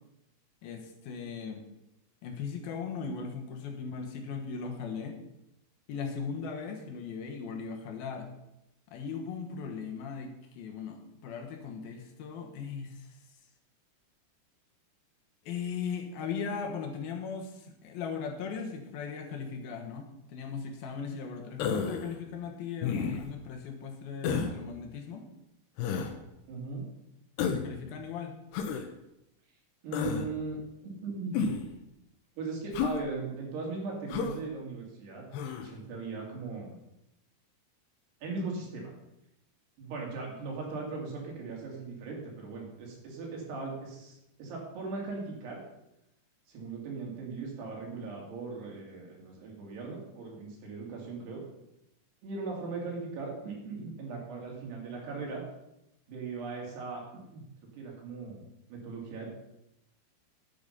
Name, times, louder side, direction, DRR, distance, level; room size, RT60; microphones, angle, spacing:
voice 1, 0.6-1.6 2.2-5.2 5.9-8.3 8.9-13.2 15.4-25.3 27.5-28.3, left 6 dB, 70° left, 2 dB, 3.0 m, -38 dB
Human voice, 21.6-22.1 22.8-23.3 24.2-24.6 25.8-26.1 27.4-27.7 28.5-28.9 29.9-30.3 31.3-31.7 32.7-33.0 34.1-34.4 35.3-35.7, left 6 dB, 85° left, 3.1 m, -31 dB
voice 2, 26.5-26.8 29.8-30.6 30.8-31.4 32.4-35.2 35.6-36.8 38.2-38.9 39.8-45.6 46.5-51.4 52.2-55.4 56.1-57.4 57.8-59.3, right 4 dB, 80° right, -1 dB, 4.9 m, -39 dB
11.0 x 8.7 x 5.5 m, 0.86 s
omnidirectional pair, 4.7 m